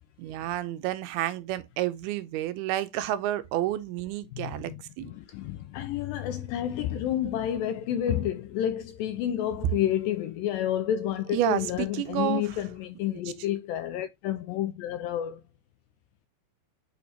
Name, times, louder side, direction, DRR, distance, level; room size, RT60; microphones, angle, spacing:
voice 1, 0.2-5.1 11.3-12.6, right 13 dB, 85° right, 2.6 m, -30 dB
voice 2, 4.4-15.4, left 11 dB, 85° left, 2.0 m, -30 dB
8.4 x 4.3 x 2.8 m
omnidirectional pair, 4.5 m